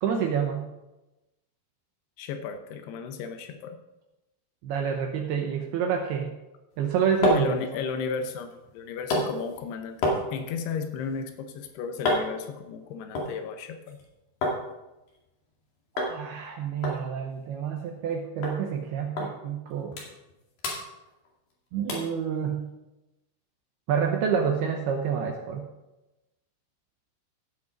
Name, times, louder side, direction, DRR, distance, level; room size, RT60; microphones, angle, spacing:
voice 1, 0.0-0.7 4.6-6.3 6.8-7.5 16.1-20.0 21.7-22.7 23.9-25.7, right 7 dB, 85° right, 2 dB, 2.3 m, -28 dB
voice 2, 2.2-3.8 7.3-10.0 10.3-14.0, left 6 dB, 80° left, 7 dB, 2.4 m, -34 dB
sound 1, 6.7-14.6 14.9-15.6 16.0-16.2 16.4-16.5 16.8-18.1 18.4-18.6 19.2-19.3 19.7-20.3 20.6-21.5 21.9-22.2 22.7-22.8, left 1 dB, 55° left, 3.5 m, -31 dB
16.0 x 6.1 x 5.2 m, 0.99 s
omnidirectional pair, 5.8 m